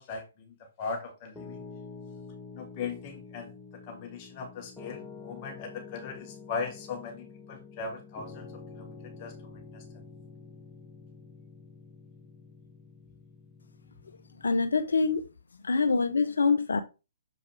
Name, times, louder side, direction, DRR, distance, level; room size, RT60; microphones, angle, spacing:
voice 1, 0.0-1.6 2.5-3.5 3.8-8.5 8.8-8.9 9.2-9.3 9.7-9.8, left 5 dB, 35° left, 1.5 m, -38 dB
Piano, 1.3-14.7, left 4 dB, 10° left, 1.1 m, -47 dB
voice 2, 14.4-15.3 15.6-16.8, left 4 dB, 80° left, 0.6 m, -25 dB
6.8 x 4.8 x 3.5 m
hypercardioid pair, 130°, 0 cm